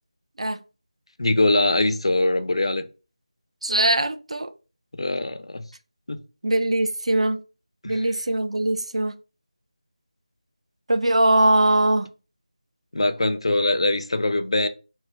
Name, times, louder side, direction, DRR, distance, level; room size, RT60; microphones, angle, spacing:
voice 1, 1.2-2.9 5.0-5.7 6.1-6.2 7.8-8.1 12.9-14.7, left 2 dB, 55° left, 0.4 m, -22 dB
voice 2, 3.6-4.5 6.4-7.4 7.8-9.1 10.9-12.1, right 1 dB, 70° right, 0.3 m, -21 dB
2.4 x 2.0 x 3.7 m
figure-of-eight pair, 165°, 3 cm